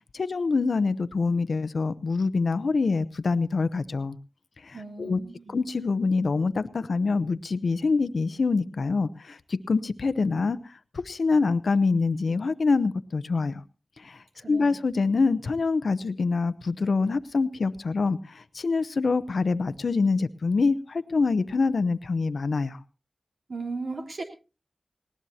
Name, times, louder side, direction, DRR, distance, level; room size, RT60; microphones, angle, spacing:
voice 1, 0.1-4.2 4.6-5.2 5.5-10.6 10.9-13.6 14.0-22.8, left 4 dB, 80° left, 14 dB, 0.7 m, -25 dB
voice 2, 4.7-5.6 14.4-14.7 23.5-24.2, right 3 dB, 75° right, 1 dB, 3.3 m, -36 dB
19.5 x 18.0 x 2.8 m, 0.32 s
cardioid pair, 45°, 0 cm